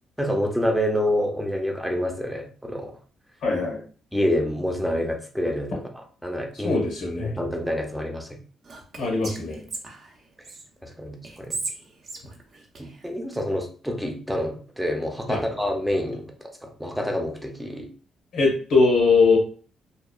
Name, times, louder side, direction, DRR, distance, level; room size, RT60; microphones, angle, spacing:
voice 1, 0.2-2.9 4.1-6.8 7.2-8.4 10.8-11.6 13.0-17.9, equal, 5° right, 3 dB, 0.5 m, -27 dB
voice 2, 3.4-3.8 6.6-7.3 9.0-9.6 15.3-15.4 18.3-19.4, left 4 dB, 80° left, -1 dB, 1.0 m, -21 dB
Whispering, 8.6-10.6 11.2-13.4, right 3 dB, 50° right, 0.6 m, -37 dB
2.8 x 2.0 x 2.3 m, 0.40 s
cardioid pair, 90°, 0 cm